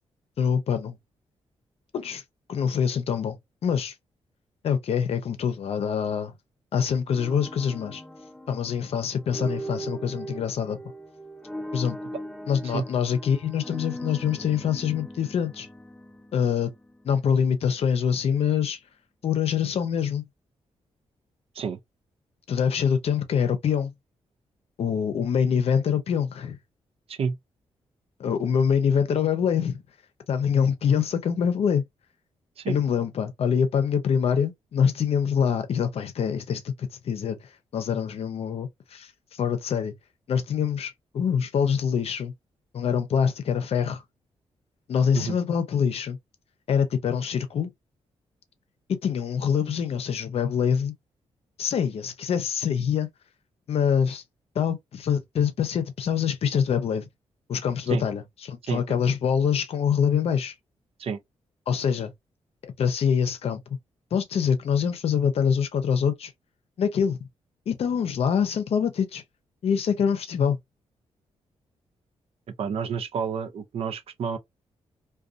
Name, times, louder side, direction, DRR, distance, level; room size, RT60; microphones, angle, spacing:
voice 1, 0.4-1.0 1.9-2.2 2.5-3.4 3.6-3.9 4.6-6.3 6.7-8.0 8.5-10.8 11.7-11.9 12.5-15.7 16.3-16.7 17.0-18.8 19.2-20.2 22.5-23.9 24.8-26.6 28.2-29.8 30.3-31.8 32.7-37.4 37.7-39.1 39.4-39.9 40.3-42.3 42.7-44.0 44.9-46.2 46.7-47.7 49.0-50.9 51.6-53.1 53.7-54.2 54.5-57.1 57.5-60.5 61.7-62.1 62.6-63.6 64.1-66.3 66.8-67.2 67.7-69.2 69.6-70.6, left 7 dB, 65° left, 0.6 m, -25 dB
sound 1, 7.1-17.2, right 1 dB, 5° left, 0.4 m, -39 dB
voice 2, 72.6-74.4, right 6 dB, 60° right, 0.5 m, -29 dB
2.5 x 2.3 x 2.4 m
cardioid pair, 100°, 11 cm